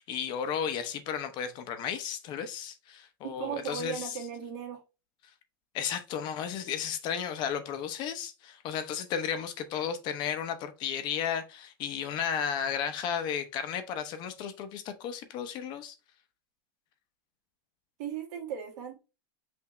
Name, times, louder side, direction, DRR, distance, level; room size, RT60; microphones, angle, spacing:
voice 1, 0.0-4.1 5.7-15.9, left 8 dB, 45° left, 0.8 m, -34 dB
voice 2, 3.2-4.8 18.0-19.0, right 8 dB, 55° right, 1.8 m, -37 dB
5.9 x 2.7 x 3.2 m
supercardioid pair, 135°, 11 cm